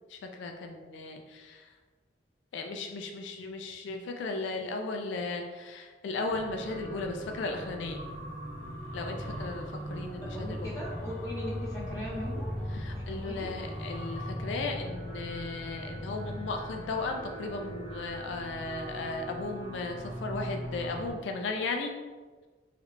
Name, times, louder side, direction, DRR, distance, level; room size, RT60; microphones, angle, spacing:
voice 1, 0.1-1.7 2.5-8.0 8.9-10.7 12.7-21.9, left 3 dB, 90° left, 4 dB, 0.3 m, -36 dB
sound 1, 6.3-21.1, equal, 55° right, 0.9 m, -39 dB
sound 2, 7.9-14.3, equal, 50° left, 0.8 m, -50 dB
voice 2, 10.2-12.5 12.9-13.5, left 1 dB, 20° left, -7 dB, 0.9 m, -39 dB
3.3 x 3.1 x 2.4 m, 1.4 s
head